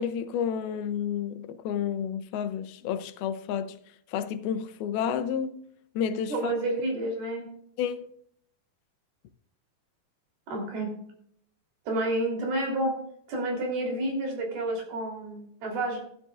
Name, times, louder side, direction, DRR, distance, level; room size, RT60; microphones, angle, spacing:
voice 1, 0.0-3.8 4.1-5.6 6.0-6.5 7.8-8.1, left 8 dB, 90° left, 2.6 m, -30 dB
voice 2, 6.3-7.4 10.5-10.9 11.9-13.0 13.3-16.0, right 1 dB, 85° right, 5.3 m, -29 dB
14.5 x 12.0 x 2.5 m
omnidirectional pair, 4.2 m